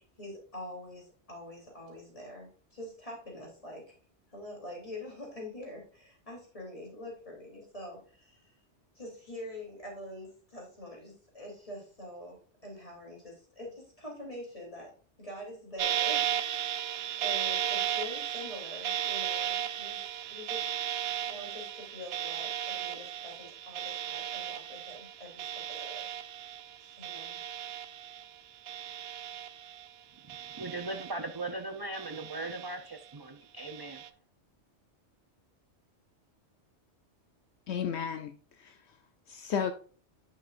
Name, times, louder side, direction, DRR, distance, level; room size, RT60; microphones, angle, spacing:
voice 1, 0.0-3.8 4.3-8.5 8.9-14.9 15.2-16.7 17.2-20.0 20.3-20.6 21.2-26.1 26.8-27.4, left 1 dB, 30° left, 3.4 m, -45 dB
sound 1, 15.8-28.4 28.7-29.9 30.3-31.5 31.9-33.0 33.6-34.1, right 10 dB, 65° right, 0.8 m, -35 dB
voice 2, 30.6-34.0, right 2 dB, 30° right, 0.5 m, -38 dB
voice 3, 37.7-38.8 39.3-39.7, left 7 dB, 75° left, 0.9 m, -33 dB
9.4 x 6.5 x 2.5 m
omnidirectional pair, 1.2 m